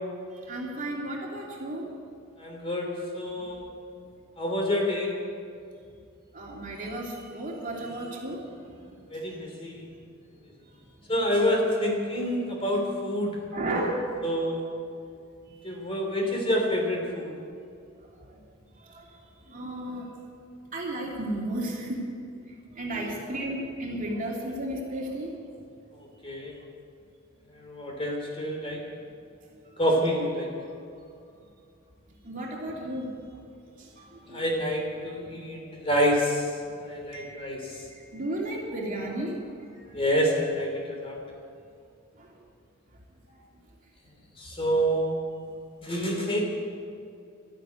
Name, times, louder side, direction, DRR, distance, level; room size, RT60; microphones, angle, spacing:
voice 1, 0.5-1.9 6.3-8.5 8.8-8.9 13.5-14.1 19.5-20.0 20.7-22.0 22.7-25.3 32.2-33.1 34.0-34.5 37.1-37.5 38.1-39.4, right 1 dB, 40° right, -2 dB, 3.0 m, -33 dB
voice 2, 2.4-3.7 4.4-5.1 9.1-9.8 11.1-13.4 14.2-14.7 15.6-17.3 26.2-26.5 27.6-28.8 29.8-30.5 34.3-36.4 36.7-37.7 39.9-41.2 44.4-45.2 45.8-46.4, equal, 25° left, 0 dB, 3.2 m, -27 dB
13.0 x 12.0 x 9.2 m, 2.4 s
head